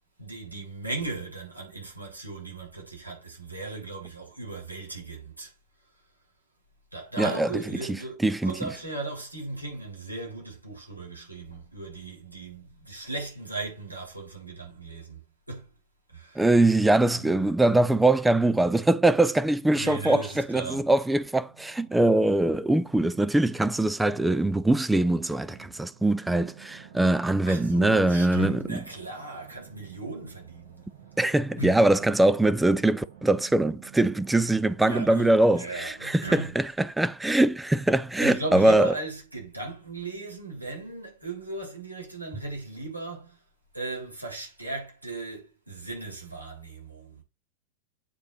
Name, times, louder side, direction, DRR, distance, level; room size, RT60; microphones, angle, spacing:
voice 1, 0.2-5.5 6.9-15.7 16.1-16.5 17.1-17.5 19.7-21.0 27.5-30.9 31.6-31.8 34.8-36.6 38.2-43.4 43.7-47.2, right 3 dB, 85° right, 3.9 m, -37 dB
voice 2, 7.2-8.7 16.4-28.8 31.2-38.9, right 2 dB, 5° right, 0.5 m, -23 dB
sound 1, 17.7-34.8, right 10 dB, 55° right, 3.7 m, -52 dB
8.7 x 5.0 x 4.2 m
figure-of-eight pair, 90°, 0 cm